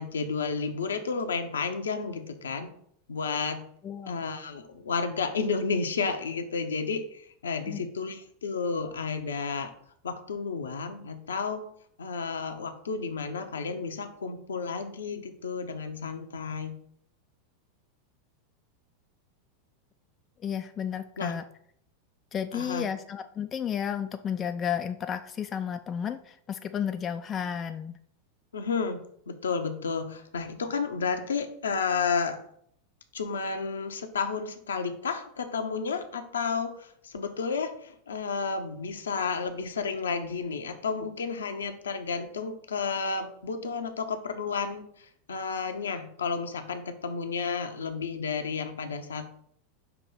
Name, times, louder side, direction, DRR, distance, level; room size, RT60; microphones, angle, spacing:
voice 1, 0.0-2.7 3.1-3.6 4.0-9.7 10.0-11.6 12.0-16.8 21.2-21.4 22.5-22.8 28.5-32.4 33.1-49.3, left 5 dB, 75° left, 7 dB, 0.7 m, -32 dB
voice 2, 3.8-4.2 7.7-7.8 20.4-21.4 22.3-28.0, left 8 dB, 30° left, 8 dB, 0.3 m, -32 dB
5.8 x 3.0 x 5.5 m, 0.67 s
figure-of-eight pair, 85°, 0 cm